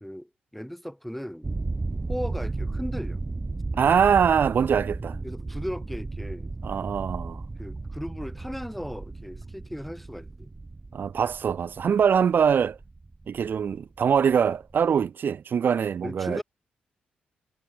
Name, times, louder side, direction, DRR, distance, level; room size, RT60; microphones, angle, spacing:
voice 1, 0.0-1.5 2.1-3.2 5.2-6.5 7.6-10.5 16.0-16.4, equal, 5° left, 1.7 m, -36 dB
sound 1, 1.4-15.1, right 3 dB, 25° right, 1.3 m, -35 dB
voice 2, 3.7-5.2 6.6-7.4 10.9-12.8 13.3-16.4, right 7 dB, 55° right, 0.9 m, -23 dB
hypercardioid pair, 45°, 4 cm